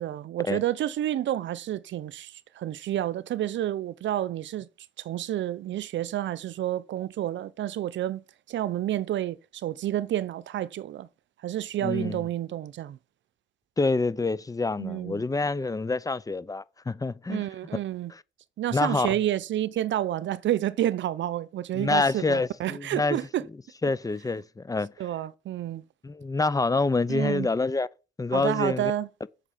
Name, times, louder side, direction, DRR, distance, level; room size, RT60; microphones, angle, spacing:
voice 1, 0.0-4.7 5.0-11.1 11.4-13.0 14.8-15.3 17.3-18.1 18.6-23.5 25.0-25.8 27.1-27.5 28.3-29.1, right 12 dB, 70° right, 0.7 m, -29 dB
voice 2, 11.8-12.2 13.8-17.5 18.1-18.2 18.7-19.1 21.7-23.2 23.8-24.9 26.0-27.9 28.2-28.9, left 3 dB, 15° left, 0.6 m, -27 dB
8.0 x 6.5 x 7.3 m
cardioid pair, 90°, 20 cm